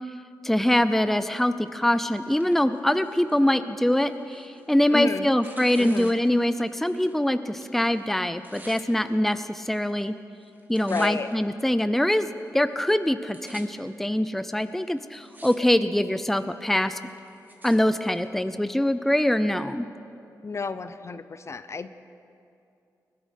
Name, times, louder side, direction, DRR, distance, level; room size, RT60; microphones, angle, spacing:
voice 1, 0.4-10.1 10.7-12.3 12.5-17.0 17.6-19.9, left 1 dB, 5° left, 12 dB, 0.5 m, -24 dB
Tearing, 1.8-7.2 7.5-8.8 9.6-10.1 10.4-11.3 12.0-12.1 12.8-12.9 13.1-13.6 14.4-14.5 15.0-15.6 15.9-16.3 16.9-17.8 18.5-18.6, right 2 dB, 25° right, 1.8 m, -50 dB
voice 2, 4.9-5.3 5.8-6.2 10.9-11.3 20.4-21.9, left 4 dB, 45° left, 12 dB, 0.6 m, -31 dB
20.0 x 11.5 x 5.2 m, 2.6 s
cardioid pair, 70°, 7 cm